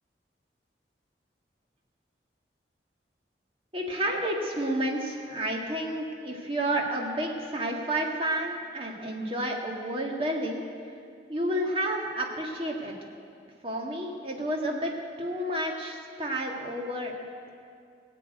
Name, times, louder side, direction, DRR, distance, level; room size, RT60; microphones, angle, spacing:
voice 1, 3.7-10.6 11.3-12.9 13.6-17.1, right 1 dB, 30° right, 0 dB, 1.9 m, -30 dB
17.5 x 7.5 x 9.2 m, 2.3 s
head